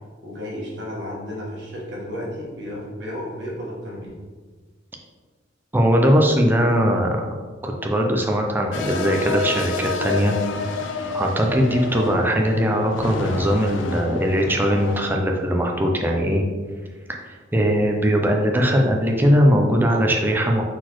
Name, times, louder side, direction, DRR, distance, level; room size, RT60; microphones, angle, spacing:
voice 1, 0.2-4.2, left 1 dB, 60° right, -4 dB, 1.3 m, -33 dB
voice 2, 5.7-7.2 7.6-10.3 11.1-16.4 17.5-20.6, equal, 10° right, 1 dB, 0.4 m, -20 dB
sound 1, 8.7-15.1, left 4 dB, 80° left, 0.4 m, -29 dB
4.2 x 4.1 x 3.0 m, 1.5 s
head